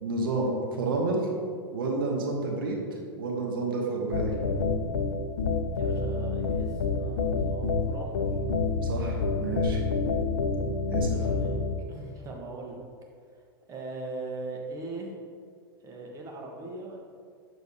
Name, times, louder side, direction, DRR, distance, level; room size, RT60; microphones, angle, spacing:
voice 1, 0.0-1.3 1.7-2.8 3.2-4.3 8.8-9.8 10.9-11.2, right 3 dB, 65° right, 0 dB, 1.0 m, -30 dB
sound 1, 4.1-11.8, left 4 dB, 70° left, 0.6 m, -28 dB
voice 2, 5.8-8.2 11.1-11.6 11.9-12.8 13.7-15.2 15.8-17.0, right 2 dB, 25° right, 0 dB, 1.1 m, -40 dB
6.9 x 6.2 x 2.8 m, 2.1 s
figure-of-eight pair, 95°, 12 cm